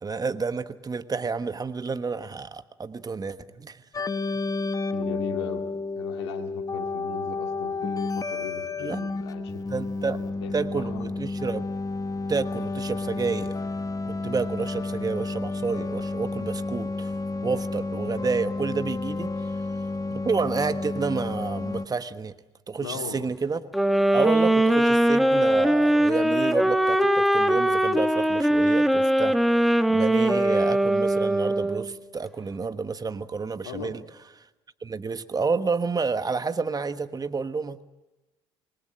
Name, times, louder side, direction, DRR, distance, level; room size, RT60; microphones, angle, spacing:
voice 1, 0.0-3.8 8.8-9.0 9.7-10.2 10.5-11.7 12.3-13.5 14.1-19.5 20.1-22.4 22.7-23.7 24.1-34.0 34.4-34.5 34.8-37.8, right 4 dB, 30° right, 11 dB, 1.3 m, -30 dB
sound 1, 3.9-21.9, left 3 dB, 25° left, 1.3 m, -31 dB
voice 2, 4.9-5.6 6.0-11.1 22.8-23.2 33.6-34.0, left 8 dB, 80° left, 5 dB, 2.2 m, -38 dB
sound 2, 23.7-31.9, right 1 dB, ahead, 1.5 m, -21 dB
27.0 x 21.0 x 7.6 m, 1.1 s
hypercardioid pair, 55°, 14 cm